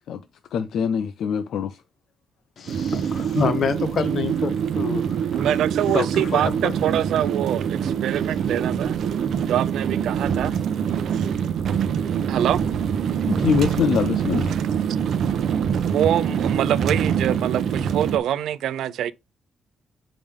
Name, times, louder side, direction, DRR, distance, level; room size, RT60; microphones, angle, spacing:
voice 1, 0.5-1.8 13.3-14.6, left 8 dB, 70° left, 0.5 m, -24 dB
voice 2, 2.6-5.2 5.9-6.7, left 6 dB, 45° left, 1.0 m, -27 dB
sound 1, 2.7-18.2, right 8 dB, 60° right, 0.7 m, -24 dB
voice 3, 5.3-9.0 9.5-10.6 10.9-11.3 12.3-13.3 14.5-15.0 15.9-19.1, right 11 dB, 90° right, 0.5 m, -25 dB
7.1 x 5.1 x 3.6 m
wide cardioid pair, 175°, 0 cm